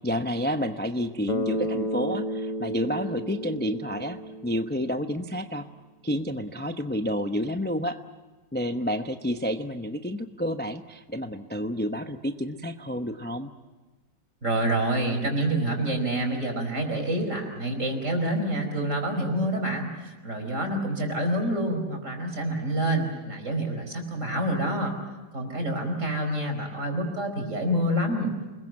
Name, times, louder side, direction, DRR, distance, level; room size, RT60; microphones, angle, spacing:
voice 1, 0.0-4.2 4.4-5.7 6.0-8.0 8.5-13.5, equal, 10° left, 6 dB, 0.5 m, -29 dB
Bass guitar, 1.3-5.3, equal, 30° left, 1.0 m, -32 dB
voice 2, 14.4-24.9 25.3-28.3, right 1 dB, 45° right, 4 dB, 5.2 m, -27 dB
28.5 x 21.5 x 7.5 m, 1.2 s
omnidirectional pair, 1.9 m